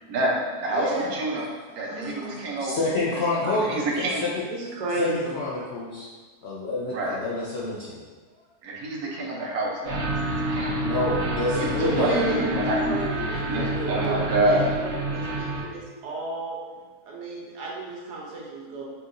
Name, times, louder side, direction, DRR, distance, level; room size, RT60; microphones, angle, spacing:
voice 1, 0.0-1.5 1.7-2.9 3.3-4.2 6.9-7.1 8.6-11.0 11.8-13.0 13.4-14.6, right 1 dB, 70° right, -2 dB, 1.2 m, -27 dB
voice 2, 0.7-1.1 1.7-2.6 3.4-3.5 4.5-5.4 11.5-16.6 17.0-18.9, right 2 dB, 90° right, -3 dB, 1.4 m, -33 dB
voice 3, 2.6-3.8 4.2-4.3 5.0-6.1 6.4-8.0 10.8-12.2, left 2 dB, 70° left, -6 dB, 0.6 m, -27 dB
sound 1, 9.8-15.6, right 2 dB, 50° right, 1.0 m, -28 dB
4.9 x 2.9 x 2.5 m, 1.4 s
omnidirectional pair, 1.7 m